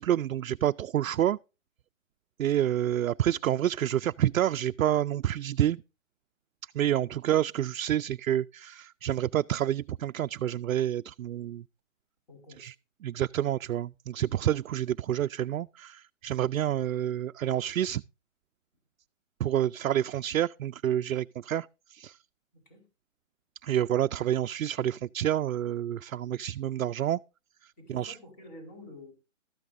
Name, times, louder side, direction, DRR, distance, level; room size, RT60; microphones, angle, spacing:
voice 1, 0.0-1.4 2.4-5.8 6.7-11.6 12.6-12.7 13.0-18.0 19.4-22.1 23.6-27.2 27.9-28.1, right 11 dB, 90° right, 0.5 m, -28 dB
voice 2, 12.3-12.7 22.5-22.8 27.8-29.1, left 1 dB, 30° left, 4.2 m, -49 dB
14.5 x 13.0 x 2.6 m
hypercardioid pair, 170°, 39 cm